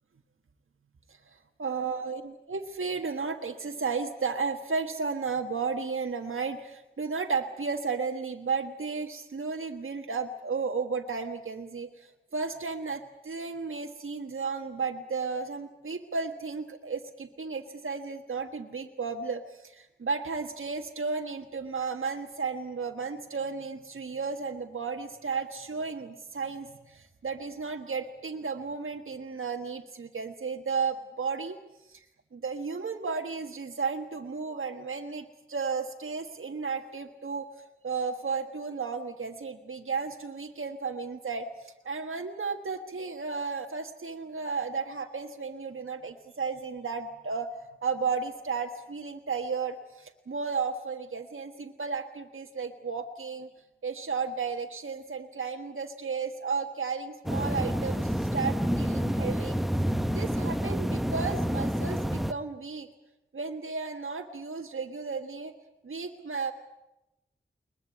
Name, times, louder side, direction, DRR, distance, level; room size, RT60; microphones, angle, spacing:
voice 1, 1.1-2.2 2.5-31.6 31.9-32.0 32.3-37.4 37.8-47.5 47.8-53.5 53.8-59.5 60.1-62.9 63.3-65.5 65.8-66.5, right 5 dB, 90° right, 3 dB, 1.5 m, -33 dB
sound 1, 57.3-62.3, equal, ahead, 0.9 m, -28 dB
21.5 x 21.5 x 8.5 m, 0.93 s
wide cardioid pair, 55°, 20 cm